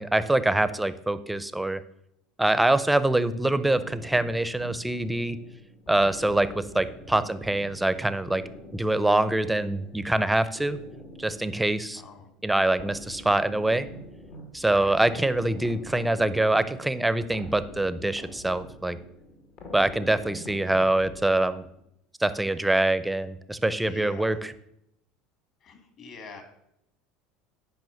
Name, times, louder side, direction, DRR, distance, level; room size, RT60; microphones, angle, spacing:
voice 1, 0.0-1.8 2.4-5.4 5.9-8.4 8.7-10.8 11.2-12.0 12.4-13.9 14.5-19.0 19.7-21.7 22.2-24.5, right 2 dB, 5° right, 14 dB, 0.6 m, -24 dB
sound 1, 3.7-21.8, left 1 dB, 65° left, 2.1 m, -45 dB
voice 2, 11.9-12.3 14.7-15.0 23.8-24.4 25.6-26.4, left 4 dB, 50° left, 7 dB, 2.5 m, -45 dB
9.2 x 5.2 x 6.4 m, 0.78 s
supercardioid pair, 100°, 0 cm